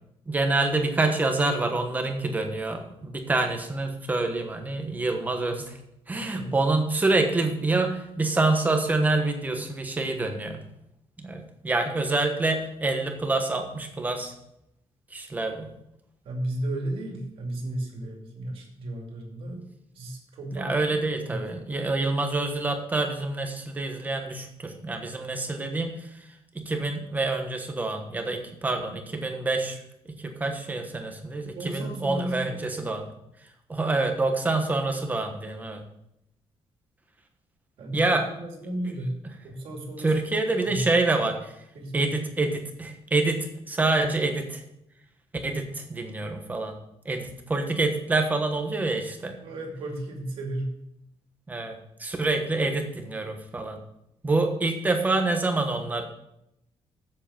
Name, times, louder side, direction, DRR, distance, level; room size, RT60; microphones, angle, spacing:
voice 1, 0.3-5.8 6.1-10.6 11.2-14.3 15.1-15.7 19.5-19.6 20.5-26.3 26.5-33.1 33.7-35.8 37.9-38.3 38.8-38.9 40.0-41.6 41.9-44.6 45.4-46.7 47.0-49.3 51.5-53.8 54.2-56.0, right 2 dB, 15° right, 4 dB, 1.2 m, -27 dB
voice 2, 6.1-6.6 16.2-19.6 19.9-21.5 31.6-32.9 37.8-39.1 39.4-40.9 41.7-42.1 49.4-50.8, right 1 dB, 65° right, 1 dB, 2.5 m, -34 dB
7.7 x 6.8 x 7.0 m, 0.80 s
cardioid pair, 170°, 10 cm